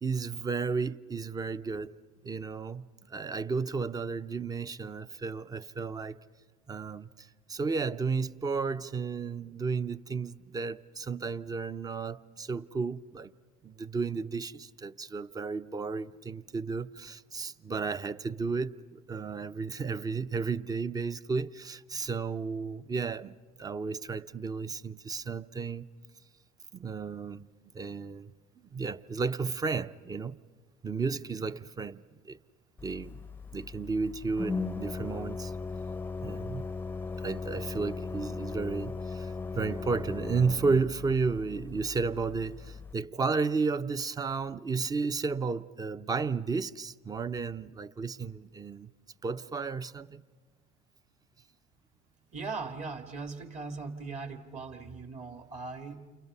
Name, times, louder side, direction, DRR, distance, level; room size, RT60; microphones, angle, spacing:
voice 1, 0.0-1.9 2.2-6.2 6.7-13.3 13.6-25.9 26.7-27.5 27.7-28.3 28.6-30.4 30.8-32.4 32.8-33.2 33.5-35.5 36.2-36.7 37.2-48.9 49.2-50.2, right 4 dB, 20° right, 0.7 m, -33 dB
Organ, 32.8-42.9, left 4 dB, 10° left, 0.7 m, -38 dB
voice 2, 52.3-56.1, right 4 dB, 40° right, 2.3 m, -39 dB
30.0 x 28.5 x 5.6 m
hypercardioid pair, 85°, 17 cm